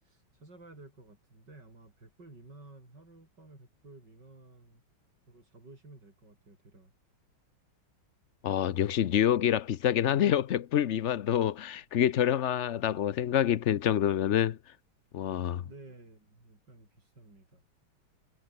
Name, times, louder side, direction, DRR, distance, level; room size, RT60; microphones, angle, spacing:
voice 1, 0.0-4.8 5.3-6.9 15.6-17.6, right 2 dB, 55° right, 7.9 m, -53 dB
voice 2, 8.4-14.6 15.1-15.6, left 10 dB, 85° left, 0.6 m, -27 dB
omnidirectional pair, 2.2 m